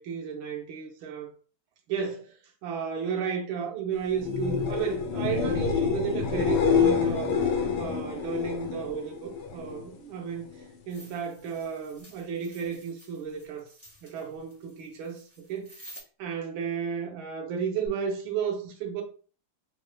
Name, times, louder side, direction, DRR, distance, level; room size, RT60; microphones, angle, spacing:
voice 1, 0.0-1.3 1.9-2.3 2.6-7.3 7.8-10.5 10.9-13.7 14.0-15.2 15.5-15.9 16.2-19.0, right 7 dB, 80° right, 1.5 m, -33 dB
sound 1, 4.1-9.9 10.2-10.8 17.9-18.0, left 6 dB, 85° left, 1.6 m, -27 dB
sound 2, 10.9-16.0, equal, 10° left, 1.3 m, -52 dB
4.5 x 3.1 x 2.2 m
omnidirectional pair, 2.2 m